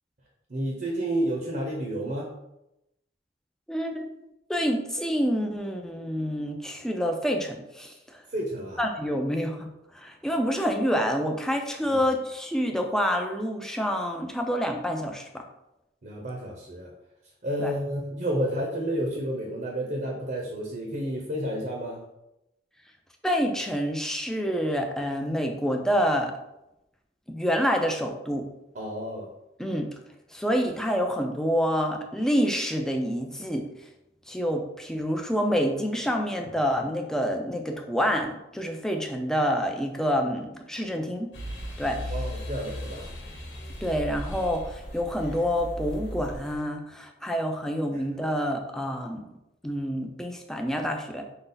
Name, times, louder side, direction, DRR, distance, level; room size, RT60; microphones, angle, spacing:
voice 1, 0.5-2.3 8.3-8.8 11.9-12.0 16.0-16.9 17.4-22.0 28.7-29.3 42.1-43.1 47.9-48.1, right 1 dB, 50° right, 0 dB, 0.8 m, -30 dB
voice 2, 3.7-4.1 4.5-8.2 8.8-15.4 17.6-17.7 23.2-26.3 27.3-28.5 29.6-29.9 30.3-33.7 34.3-41.3 41.8-42.1 43.8-49.3 49.6-51.2, equal, 5° left, 3 dB, 0.4 m, -27 dB
sound 1, 41.3-46.6, equal, 70° left, 1.1 m, -37 dB
5.4 x 2.4 x 3.9 m, 0.89 s
head